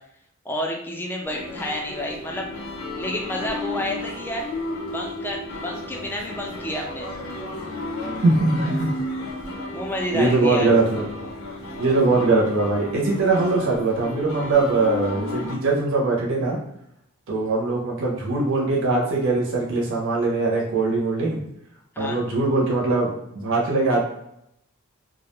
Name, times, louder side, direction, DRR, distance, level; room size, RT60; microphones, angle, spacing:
voice 1, 0.4-2.5 3.0-4.5 4.9-7.1 9.7-10.7 22.0-22.2, left 1 dB, 10° left, 0 dB, 0.4 m, -29 dB
sound 1, 1.2-15.5, left 2 dB, 80° left, 0.7 m, -33 dB
voice 2, 8.2-8.9 10.1-11.0 11.8-16.6 17.3-21.4 22.0-24.0, right 3 dB, 65° right, -2 dB, 0.6 m, -21 dB
2.3 x 2.0 x 3.0 m, 0.75 s
head